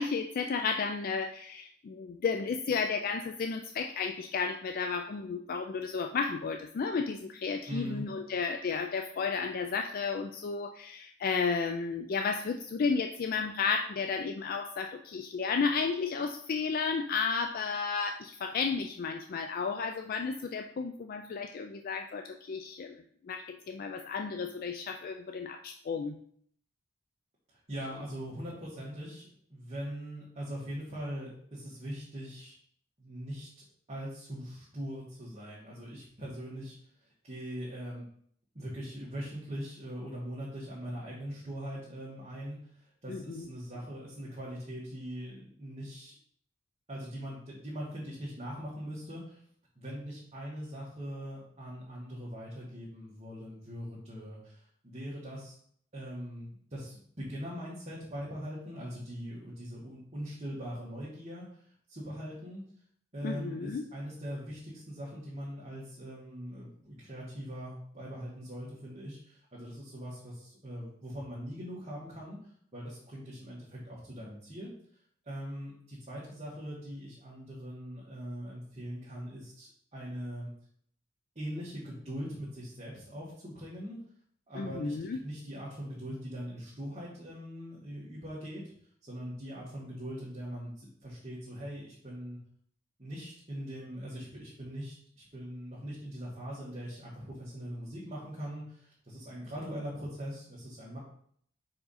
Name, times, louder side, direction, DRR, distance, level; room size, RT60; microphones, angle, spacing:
voice 1, 0.0-22.9 23.3-26.2 43.1-43.5 63.2-63.8 84.6-85.2, left 5 dB, 50° left, 5 dB, 0.4 m, -33 dB
voice 2, 7.7-8.0 27.5-32.5 33.0-36.7 37.0-38.0 38.5-46.1 46.9-49.4 49.7-55.5 55.9-62.6 63.1-74.7 75.2-80.5 81.3-84.0 84.5-88.6 89.0-92.4 93.0-101.0, equal, 35° right, -7 dB, 1.6 m, -41 dB
4.9 x 4.7 x 4.2 m, 0.63 s
head